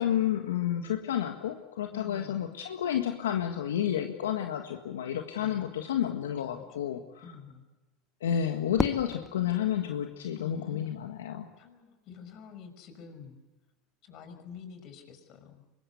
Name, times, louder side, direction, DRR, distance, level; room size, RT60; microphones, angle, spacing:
voice 1, 0.0-7.2 8.2-11.5, left 10 dB, 85° left, 5 dB, 1.7 m, -30 dB
voice 2, 1.9-2.4 5.4-5.7 6.5-7.6 10.4-11.0 11.6-13.4 14.0-15.7, left 7 dB, 55° left, 8 dB, 5.6 m, -48 dB
Fireworks, 8.8-11.0, left 3 dB, 20° left, 1.6 m, -36 dB
24.5 x 21.5 x 8.2 m, 1.2 s
hypercardioid pair, 90°, 0 cm